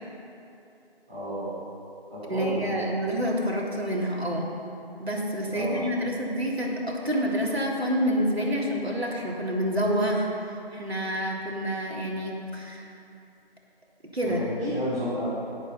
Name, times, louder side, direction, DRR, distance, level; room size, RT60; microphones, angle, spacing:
voice 1, 1.1-1.5 2.1-2.8 5.5-5.8 14.2-15.2, equal, 5° right, -16 dB, 3.5 m, -32 dB
voice 2, 2.3-4.5 5.0-10.3 10.7-12.8 14.1-14.7, equal, 85° right, -3 dB, 3.2 m, -28 dB
17.5 x 8.5 x 5.7 m, 2.8 s
figure-of-eight pair, 165°, 31 cm